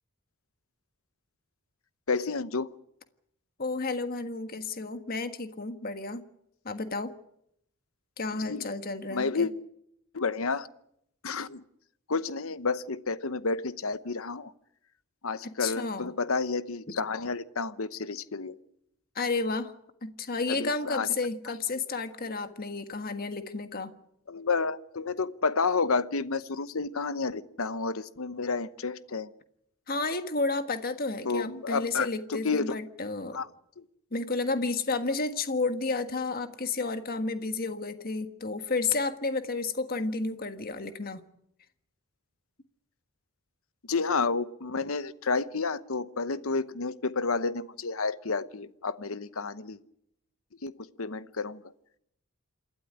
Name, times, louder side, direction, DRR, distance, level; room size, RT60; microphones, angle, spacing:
voice 1, 2.1-2.7 8.5-8.6 9.1-9.5 10.1-10.7 11.2-11.6 12.1-14.5 15.2-18.6 20.5-21.1 24.3-29.3 31.2-32.7 33.3-33.5 33.8-33.9 43.9-49.8 50.6-51.6, left 4 dB, 75° left, 14 dB, 1.0 m, -30 dB
voice 2, 3.6-6.2 6.6-7.1 8.2-9.5 15.4-16.1 16.9-17.0 19.1-19.7 20.0-23.9 29.9-33.4 34.1-41.2, left 3 dB, 45° left, 9 dB, 1.5 m, -31 dB
28.0 x 12.5 x 9.9 m, 0.77 s
head